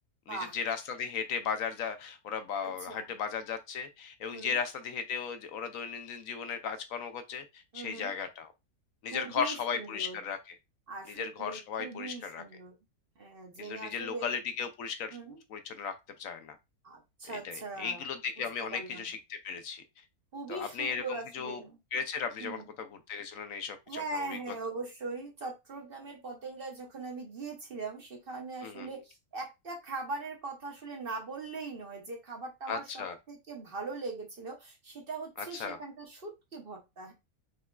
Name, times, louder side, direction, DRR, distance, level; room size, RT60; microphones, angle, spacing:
voice 1, 0.3-8.5 9.0-10.4 11.1-12.4 13.6-15.2 15.5-16.6 17.3-19.8 20.5-21.6 21.9-24.4 28.6-28.9 32.7-33.2 35.4-35.8, left 6 dB, 70° left, 1.0 m, -36 dB
voice 2, 2.6-3.0 4.3-4.6 7.7-8.1 9.1-10.2 10.9-12.7 13.2-14.3 15.1-15.4 16.8-18.1 18.6-19.1 20.3-21.8 22.4-22.6 23.9-37.1, right 3 dB, 45° right, 0.9 m, -41 dB
5.1 x 3.5 x 2.3 m
omnidirectional pair, 1.6 m